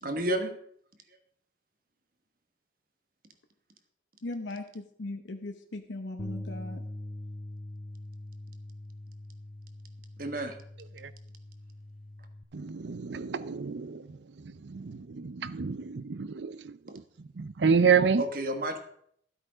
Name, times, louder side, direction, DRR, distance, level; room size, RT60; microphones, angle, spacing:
voice 1, 0.0-0.5 10.2-10.6 18.2-18.8, right 1 dB, 50° right, 1.4 m, -30 dB
voice 2, 4.2-6.8, left 2 dB, 90° left, 0.9 m, -38 dB
Bass guitar, 6.2-12.4, left 1 dB, ahead, 0.8 m, -43 dB
voice 3, 12.5-14.2 14.6-16.7 17.4-18.2, right 6 dB, 75° right, 0.6 m, -28 dB
13.0 x 8.1 x 5.0 m
head